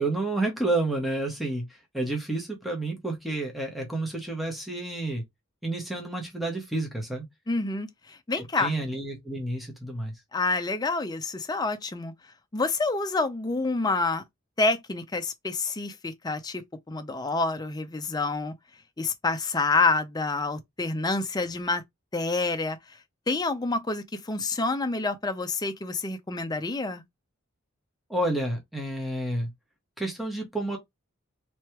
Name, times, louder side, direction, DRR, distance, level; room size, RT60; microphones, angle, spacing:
voice 1, 0.0-5.2 5.6-7.2 8.4-10.1 28.1-29.5 30.0-30.8, right 2 dB, ahead, 1.0 m, -30 dB
voice 2, 7.5-8.7 10.3-12.1 12.5-14.2 14.6-16.6 16.9-18.5 19.0-21.8 22.1-22.8 23.3-27.0, left 3 dB, 20° left, 0.5 m, -28 dB
3.3 x 3.1 x 3.1 m
head